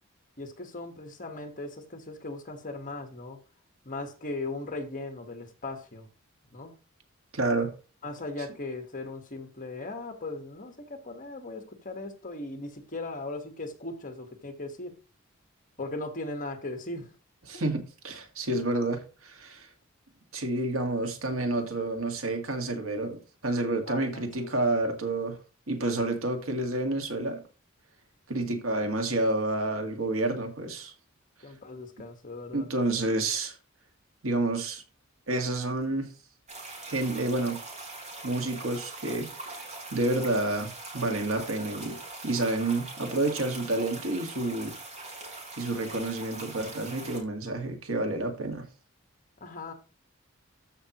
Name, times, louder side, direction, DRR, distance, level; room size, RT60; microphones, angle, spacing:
voice 1, 0.4-3.4 3.8-6.1 6.5-6.8 8.0-15.0 15.8-17.1 23.9-24.9 28.8-29.0 31.4-32.7 49.4-49.7, left 2 dB, 40° left, 1.5 m, -38 dB
voice 2, 7.3-7.7 17.5-19.7 20.3-25.4 25.7-27.4 28.3-30.9 32.5-33.5 34.2-34.8 35.3-36.1 36.8-37.6 38.2-39.6 39.9-42.0 42.2-44.7 45.6-48.7, right 2 dB, 75° right, 1.9 m, -29 dB
sound 1, 36.5-47.2, right 2 dB, 35° right, 3.9 m, -42 dB
13.5 x 5.6 x 3.1 m
head